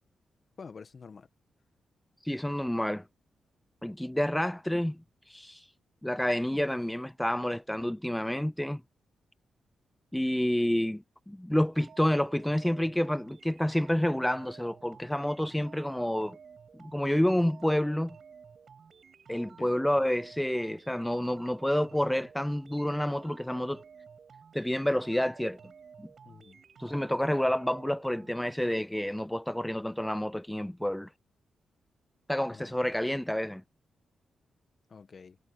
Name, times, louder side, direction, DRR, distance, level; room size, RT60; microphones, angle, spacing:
voice 1, 0.6-1.3 10.6-10.8 19.6-19.8 26.2-26.6 32.5-33.0 34.9-35.4, left 5 dB, 50° left, 1.7 m, -49 dB
voice 2, 2.2-3.0 3.8-5.7 6.0-8.8 10.1-16.4 16.8-18.2 19.3-23.8 24.5-25.6 26.0-26.1 26.8-31.1 32.3-33.6, left 1 dB, 5° left, 0.6 m, -29 dB
sound 1, 11.7-28.7, right 6 dB, 60° right, 7.9 m, -54 dB
cardioid pair, 70°, 0 cm